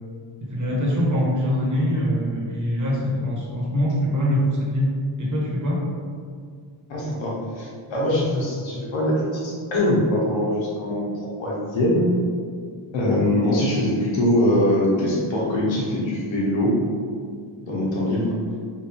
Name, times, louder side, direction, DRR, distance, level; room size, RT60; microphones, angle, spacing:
voice 1, 0.4-5.8, equal, 40° right, -4 dB, 1.2 m, -23 dB
voice 2, 6.9-12.1 12.9-16.8 17.6-18.3, left 1 dB, 80° left, -4 dB, 1.3 m, -22 dB
5.0 x 2.6 x 3.4 m, 2.1 s
cardioid pair, 105°, 45 cm